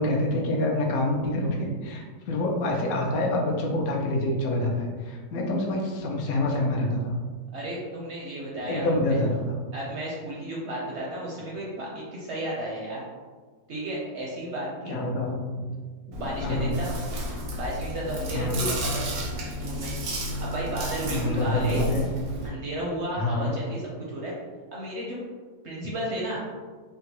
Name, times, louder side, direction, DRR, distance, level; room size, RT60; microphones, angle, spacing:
voice 1, 0.0-7.1 8.7-9.6 14.9-15.7 16.4-16.7 18.3-18.7 21.1-22.0 23.2-23.5, left 1 dB, 70° left, 0 dB, 1.0 m, -26 dB
voice 2, 7.5-9.2 9.7-13.0 13.7-15.0 16.2-16.9 17.6-19.0 19.5-19.9 20.4-21.8 22.4-24.4 24.7-25.2 25.6-26.4, right 1 dB, 65° right, -4 dB, 0.7 m, -33 dB
Chewing mastication, 16.1-22.5, equal, 85° right, 1.2 m, -32 dB
3.7 x 2.2 x 2.9 m, 1.5 s
omnidirectional pair, 1.6 m